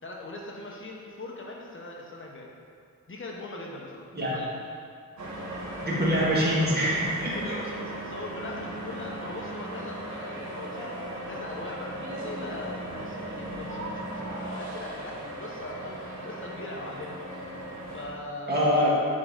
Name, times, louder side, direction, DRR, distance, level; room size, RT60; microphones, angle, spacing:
voice 1, 0.0-2.5 3.1-4.5 7.3-10.9 11.2-17.2 17.9-18.9, left 2 dB, 35° left, -2 dB, 1.0 m, -40 dB
sound 1, 5.2-18.1, right 1 dB, 60° right, 1.1 m, -37 dB
voice 2, 5.8-7.6 18.5-18.9, equal, 30° right, -7 dB, 1.7 m, -24 dB
9.9 x 3.9 x 3.8 m, 2.2 s
wide cardioid pair, 155°, 33 cm